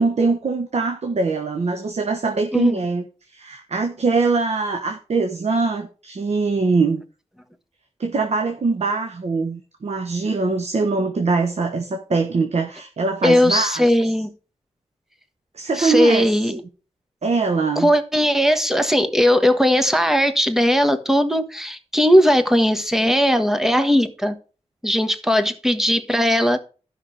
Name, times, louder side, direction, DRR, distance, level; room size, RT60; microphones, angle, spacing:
voice 1, 0.0-3.0 3.3-7.0 8.0-13.8 15.5-16.6 17.2-17.9, right 4 dB, 65° right, 1.2 m, -22 dB
voice 2, 13.2-14.3 15.8-16.6 17.8-24.3 24.8-26.6, equal, 5° right, 1.4 m, -18 dB
12.5 x 5.9 x 4.8 m
cardioid pair, 70°, 12 cm